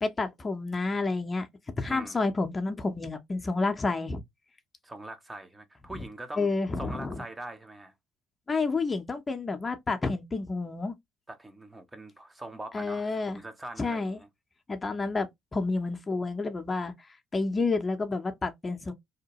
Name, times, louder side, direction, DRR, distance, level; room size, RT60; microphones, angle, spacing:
voice 1, 0.0-1.5 1.8-4.2 6.4-7.2 8.5-10.9 12.7-13.4 13.8-14.2 14.7-15.3 15.5-16.9 17.3-18.9, left 3 dB, 30° left, 0.6 m, -29 dB
voice 2, 1.9-2.2 4.8-6.5 6.8-7.9 11.3-14.3, right 1 dB, 15° right, 0.6 m, -42 dB
2.8 x 2.1 x 2.8 m
hypercardioid pair, 60°, 0 cm